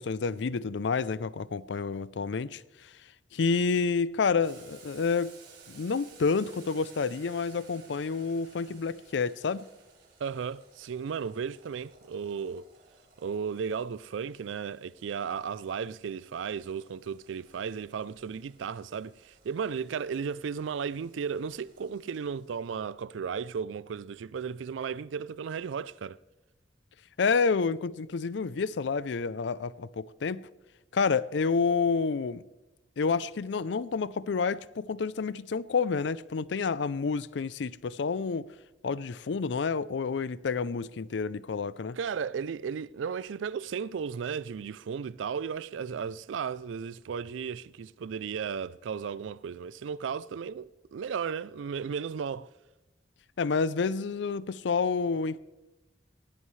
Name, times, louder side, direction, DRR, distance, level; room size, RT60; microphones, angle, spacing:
voice 1, 0.0-2.9 3.3-5.4 5.7-9.7 27.2-30.5 30.9-32.4 33.0-38.5 38.8-42.0 53.4-55.4, left 5 dB, 70° left, 0.4 m, -29 dB
Boiling, 4.4-22.8, right 5 dB, 60° right, 5.7 m, -58 dB
voice 2, 10.2-12.7 13.2-26.2 42.0-52.5, right 6 dB, 85° right, 0.4 m, -35 dB
19.5 x 16.5 x 3.2 m
head